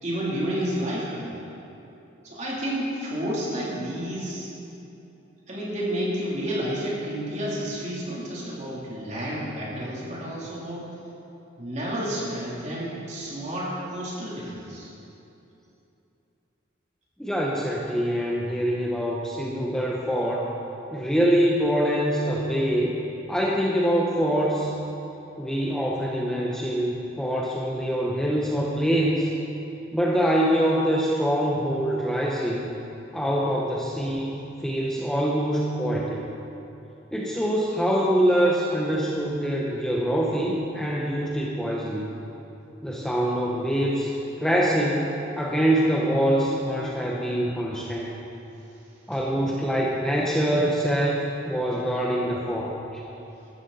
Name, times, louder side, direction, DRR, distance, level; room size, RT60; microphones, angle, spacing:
voice 1, 0.0-1.3 2.2-4.5 5.5-10.9 11.6-14.9, equal, 35° right, -6 dB, 3.5 m, -30 dB
voice 2, 17.2-20.5 20.9-22.9 23.3-24.7 25.4-29.3 29.9-32.7 33.1-36.2 37.1-42.1 42.8-45.1 45.4-48.1 49.1-53.0, equal, 5° left, -3 dB, 0.9 m, -24 dB
15.0 x 13.0 x 4.2 m, 2.9 s
head